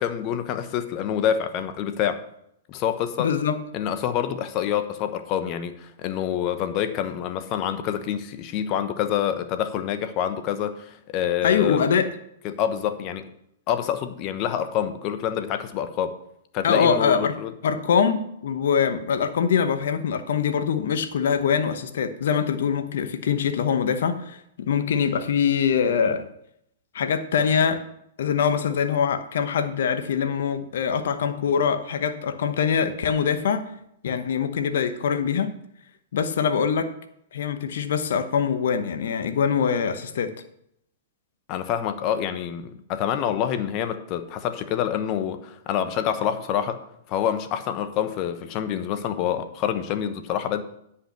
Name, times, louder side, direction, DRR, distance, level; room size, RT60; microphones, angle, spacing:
voice 1, 0.0-2.2 2.7-3.3 3.7-11.9 12.4-13.3 13.7-16.1 16.5-17.5 41.5-46.8 47.1-50.6, left 9 dB, 40° left, 10 dB, 1.0 m, -27 dB
voice 2, 3.2-3.6 11.4-12.1 16.6-17.3 17.6-26.3 26.9-27.8 28.2-33.6 34.0-35.5 36.1-36.9 37.3-40.3, left 7 dB, 70° left, 9 dB, 1.0 m, -23 dB
10.0 x 5.7 x 6.8 m, 0.75 s
hypercardioid pair, 125°, 0 cm